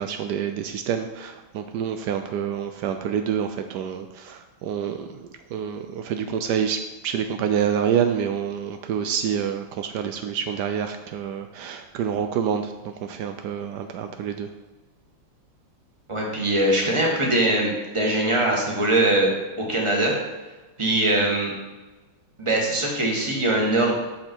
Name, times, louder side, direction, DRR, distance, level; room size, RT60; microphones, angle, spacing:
voice 1, 0.0-14.5, right 8 dB, 90° right, 7 dB, 0.9 m, -27 dB
voice 2, 16.1-20.1 20.8-21.5 22.4-24.0, right 1 dB, 15° right, -2 dB, 1.4 m, -22 dB
8.0 x 6.4 x 4.5 m, 1.2 s
omnidirectional pair, 2.4 m